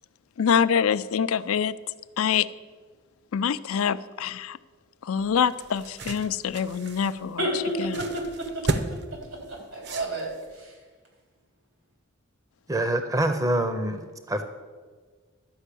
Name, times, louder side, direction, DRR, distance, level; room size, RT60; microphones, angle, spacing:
voice 1, 0.4-1.7 2.2-2.5 3.3-4.6 5.0-7.4 7.8-8.1, left 7 dB, 85° left, 15 dB, 0.4 m, -25 dB
sound 1, 5.2-10.6, right 2 dB, 55° right, 0.8 m, -35 dB
voice 2, 7.4-8.2 8.5-8.6 8.9-10.3 10.5-10.7, right 1 dB, 85° right, -1 dB, 3.8 m, -31 dB
voice 3, 12.7-14.0 14.3-14.4, right 1 dB, 15° right, 8 dB, 0.6 m, -25 dB
12.0 x 5.4 x 8.3 m, 1.5 s
head